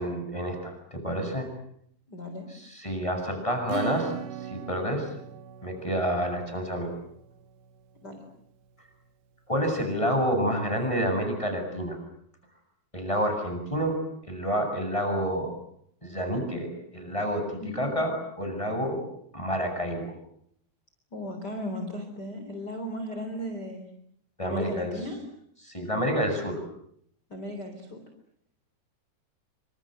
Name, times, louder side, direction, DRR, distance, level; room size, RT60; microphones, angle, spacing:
voice 1, 0.0-1.5 2.5-4.1 4.4-5.1 5.6-6.9 9.5-12.0 12.9-14.0 14.3-15.5 16.0-19.0 19.3-20.1 24.4-24.9 25.6-26.6, equal, 5° left, 5 dB, 7.3 m, -29 dB
voice 2, 2.1-2.5 8.0-8.2 17.6-17.9 21.1-23.9 24.4-25.2 27.3-28.0, left 1 dB, 25° left, 5 dB, 3.8 m, -36 dB
Acoustic guitar / Strum, 3.7-8.0, right 10 dB, 70° right, 3.7 m, -39 dB
28.5 x 26.5 x 7.9 m, 0.70 s
omnidirectional pair, 4.9 m